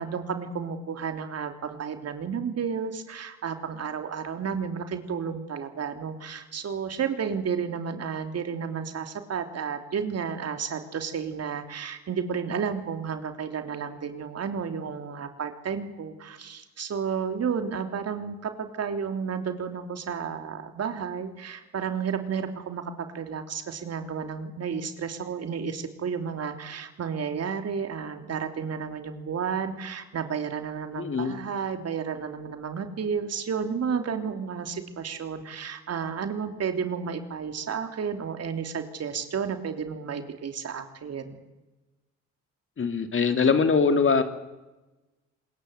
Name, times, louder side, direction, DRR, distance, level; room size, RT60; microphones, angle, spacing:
voice 1, 0.0-41.4, right 6 dB, 55° right, 7 dB, 3.3 m, -32 dB
voice 2, 31.0-31.4 42.8-44.2, left 5 dB, 40° left, 8 dB, 2.8 m, -22 dB
27.0 x 21.0 x 8.2 m, 1.1 s
cardioid pair, 90°, 30 cm